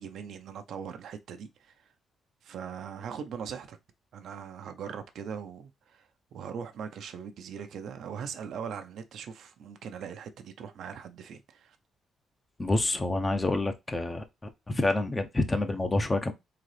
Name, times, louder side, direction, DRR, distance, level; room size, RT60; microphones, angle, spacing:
voice 1, 0.0-1.7 2.4-3.8 4.1-11.8, right 7 dB, 70° right, 0.6 m, -40 dB
voice 2, 12.6-14.2 14.7-16.3, left 2 dB, 20° left, 0.8 m, -27 dB
3.9 x 3.7 x 3.3 m
cardioid pair, 90°, 0 cm